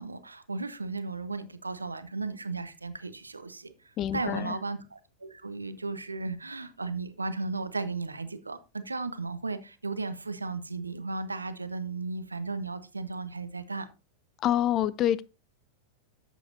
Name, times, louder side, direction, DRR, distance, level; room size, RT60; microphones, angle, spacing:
voice 1, 0.0-3.7 4.1-13.9, right 3 dB, 80° right, 1.0 m, -35 dB
voice 2, 4.0-4.5 14.4-15.2, left 11 dB, 35° left, 0.5 m, -26 dB
12.0 x 8.0 x 2.7 m
figure-of-eight pair, 90°, 0 cm